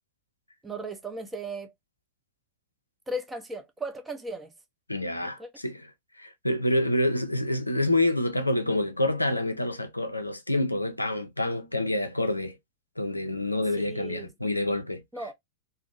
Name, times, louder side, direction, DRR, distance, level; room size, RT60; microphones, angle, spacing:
voice 1, 0.6-1.7 3.1-4.5 5.4-5.5 13.8-14.3 15.1-15.3, right 1 dB, 10° right, 0.5 m, -36 dB
voice 2, 4.9-5.9 6.2-12.6 13.0-15.0, left 1 dB, 85° left, 0.4 m, -27 dB
2.6 x 2.0 x 2.4 m
figure-of-eight pair, 90°, 0 cm